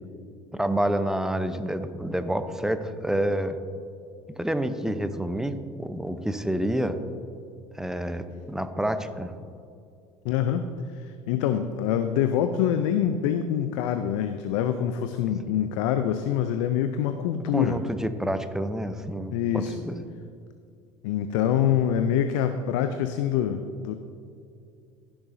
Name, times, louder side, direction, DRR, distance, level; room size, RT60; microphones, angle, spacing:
voice 1, 0.5-3.5 4.4-7.0 7.7-8.2 8.5-9.3 17.5-20.0, right 1 dB, 5° right, 9 dB, 0.7 m, -28 dB
voice 2, 10.2-17.8 19.3-19.7 21.0-23.9, left 9 dB, 70° left, 9 dB, 0.5 m, -25 dB
15.5 x 7.0 x 2.7 m, 2.4 s
hypercardioid pair, 70°, 17 cm